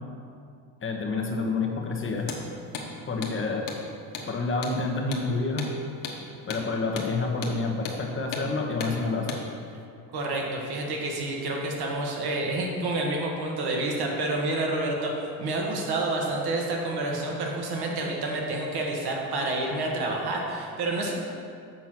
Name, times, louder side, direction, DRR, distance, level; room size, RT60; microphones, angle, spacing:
voice 1, 0.8-2.3 3.1-3.6 4.3-5.7 6.5-9.4, left 3 dB, 30° left, 1 dB, 1.1 m, -28 dB
Hammer, 2.2-2.4 2.7-2.9 3.2-3.4 3.7-3.8 4.1-4.3 4.6-4.8 5.1-5.3 5.6-5.7 6.0-6.2 6.5-6.6 7.0-7.1 7.4-7.6 7.9-8.0 8.3-8.5 8.8-9.0 9.3-9.4, left 5 dB, 70° left, 1.3 m, -35 dB
voice 2, 10.1-21.1, right 2 dB, 60° right, 0 dB, 1.6 m, -29 dB
7.4 x 4.6 x 5.9 m, 2.5 s
cardioid pair, 100°, 43 cm